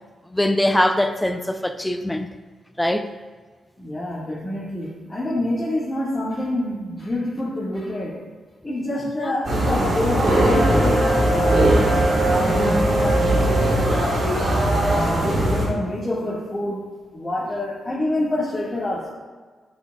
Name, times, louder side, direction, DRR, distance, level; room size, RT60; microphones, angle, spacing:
voice 1, 0.3-2.3 2.8-3.1 9.2-9.4 12.4-12.9, left 1 dB, 10° left, 0.5 m, -22 dB
voice 2, 3.8-8.3 8.6-11.8 12.3-14.6 14.9-19.1, left 1 dB, 30° left, 1.7 m, -27 dB
sound 1, 9.4-15.7, right 1 dB, 60° right, 1.8 m, -19 dB
9.4 x 4.4 x 2.3 m
supercardioid pair, 45°, 0 cm